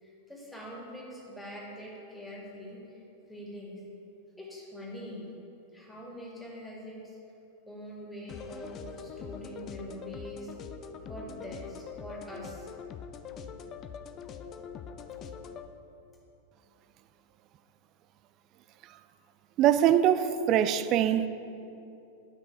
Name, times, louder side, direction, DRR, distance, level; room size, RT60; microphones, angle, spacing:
voice 1, 0.0-3.0 3.3-3.8 4.4-5.3 5.7-7.2 7.7-10.5 11.1-12.7, equal, ahead, -5 dB, 2.2 m, -43 dB
sound 1, 8.3-15.7, left 7 dB, 30° left, 0.4 m, -43 dB
voice 2, 19.6-21.3, right 10 dB, 35° right, 12 dB, 0.3 m, -23 dB
10.0 x 5.9 x 4.7 m, 2.8 s
figure-of-eight pair, 90°, 0 cm